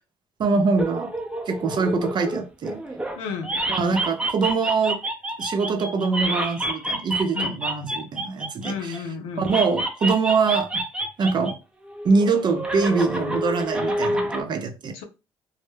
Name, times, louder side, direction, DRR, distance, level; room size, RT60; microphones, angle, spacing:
voice 1, 0.4-1.1 1.5-2.8 3.7-5.0 5.4-9.0 9.4-10.8 11.2-11.6 12.0-15.0, right 4 dB, 50° right, 0.6 m, -23 dB
sound 1, 0.8-3.2 3.4-9.0 9.4-11.5 11.8-14.4, right 1 dB, 10° right, 0.6 m, -28 dB
voice 2, 3.2-3.6 7.3-7.5 8.6-9.5 14.9-15.0, left 6 dB, 90° left, 0.5 m, -32 dB
2.1 x 2.1 x 3.2 m
supercardioid pair, 70°, 10 cm